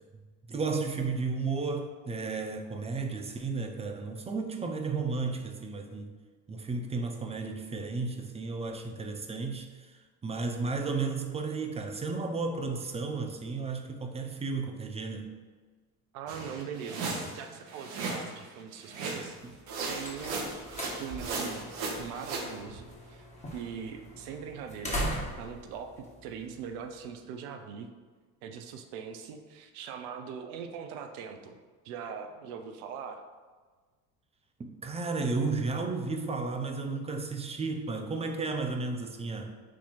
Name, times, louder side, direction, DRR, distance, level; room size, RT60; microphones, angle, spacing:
voice 1, 0.5-6.1 6.5-15.3 19.4-19.5 34.6-39.5, right 4 dB, 15° right, 4 dB, 0.4 m, -33 dB
voice 2, 16.1-19.4 19.9-20.5 21.0-21.7 22.0-23.3 23.5-25.1 25.4-27.9 28.4-31.6 31.8-33.3, right 7 dB, 70° right, 6 dB, 0.7 m, -41 dB
sound 1, 16.3-18.4 18.9-19.4 19.7-22.5, right 3 dB, 55° right, 1.0 m, -36 dB
sound 2, 19.5-27.0, equal, 15° left, 1.3 m, -40 dB
4.4 x 2.8 x 4.2 m, 1.4 s
hypercardioid pair, 65°, 45 cm